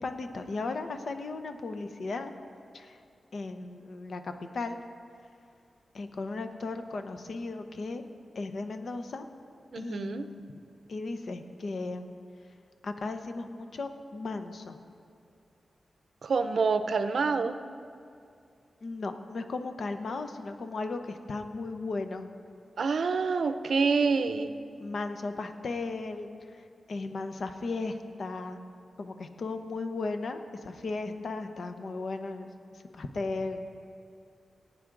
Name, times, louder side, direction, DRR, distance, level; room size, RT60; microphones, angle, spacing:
voice 1, 0.0-2.3 2.7-3.0 3.3-4.8 5.9-8.0 8.3-9.3 9.8-10.4 10.9-12.1 12.8-14.8 18.8-22.3 24.8-28.6 29.0-33.7, left 3 dB, 60° left, 7 dB, 0.7 m, -36 dB
voice 2, 9.7-10.2 16.2-17.6 22.8-24.5, right 4 dB, 70° right, 9 dB, 0.5 m, -27 dB
18.5 x 9.2 x 3.8 m, 2.5 s
wide cardioid pair, 135°, 0 cm